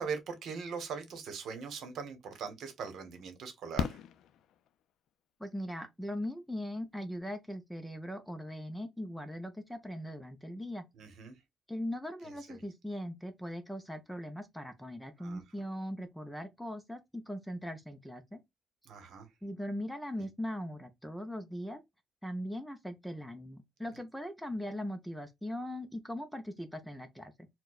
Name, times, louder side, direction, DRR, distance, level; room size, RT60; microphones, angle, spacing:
voice 1, 0.0-4.0 10.9-11.4 12.2-12.6 15.2-15.4 18.9-19.3 20.2-20.3, right 5 dB, 65° right, 0.9 m, -41 dB
Fireworks, 2.1-2.2 3.8-5.1 6.8-6.9 7.1-7.2, left 8 dB, 75° left, 0.3 m, -37 dB
voice 2, 5.4-10.8 11.7-18.4 19.4-21.8 22.2-27.5, equal, ahead, 0.4 m, -40 dB
4.4 x 2.1 x 2.3 m
cardioid pair, 170°, 0 cm